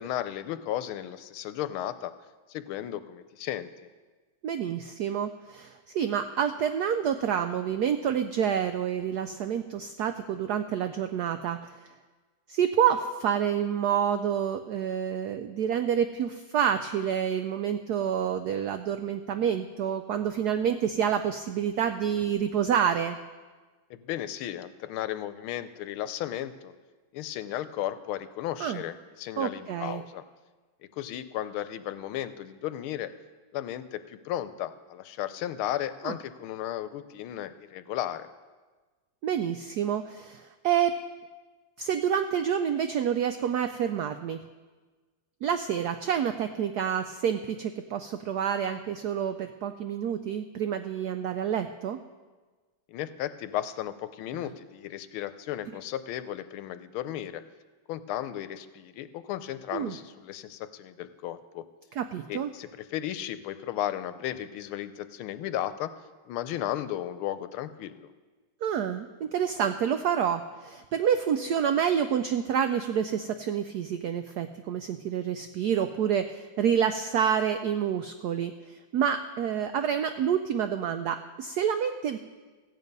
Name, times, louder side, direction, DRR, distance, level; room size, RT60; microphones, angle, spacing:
voice 1, 0.0-2.1 2.5-3.9 23.9-26.7 27.1-30.2 31.0-33.1 33.5-38.3 52.9-57.4 57.9-61.7 62.3-65.9 66.3-68.1, left 12 dB, 85° left, 12 dB, 1.5 m, -35 dB
voice 2, 4.4-11.7 12.5-23.2 28.6-28.8 29.4-30.0 36.0-36.1 39.2-41.0 41.8-44.4 45.4-52.0 59.7-59.9 62.0-62.5 68.6-82.2, right 8 dB, 85° right, 9 dB, 0.8 m, -28 dB
15.0 x 9.2 x 5.3 m, 1.3 s
omnidirectional pair, 2.3 m